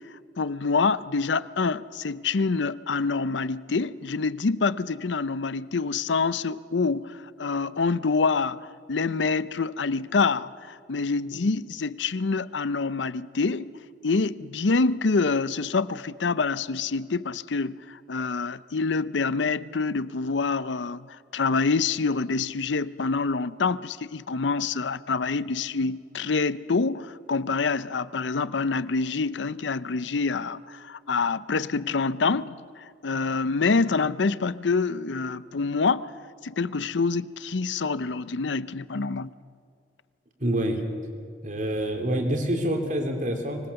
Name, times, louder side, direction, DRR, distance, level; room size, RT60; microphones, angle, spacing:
voice 1, 0.4-8.6 8.9-13.7 14.0-36.1 36.4-39.3, left 4 dB, 80° left, 17 dB, 0.6 m, -26 dB
voice 2, 40.4-40.8 41.4-43.7, right 1 dB, 45° right, 3 dB, 3.2 m, -26 dB
25.0 x 20.0 x 7.0 m, 2.3 s
head